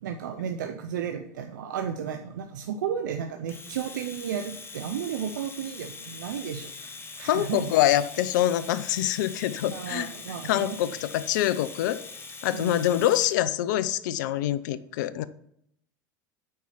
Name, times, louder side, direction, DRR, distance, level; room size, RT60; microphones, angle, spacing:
voice 1, 0.0-7.7 9.7-10.8 12.5-12.8, right 8 dB, 85° right, 6 dB, 0.6 m, -33 dB
Domestic sounds home sounds, 3.5-13.4, left 4 dB, 25° left, 1.2 m, -42 dB
voice 2, 7.2-10.1 10.5-12.0 12.4-15.2, left 12 dB, 75° left, 16 dB, 0.6 m, -25 dB
9.3 x 4.4 x 5.7 m, 0.73 s
hypercardioid pair, 85°, 10 cm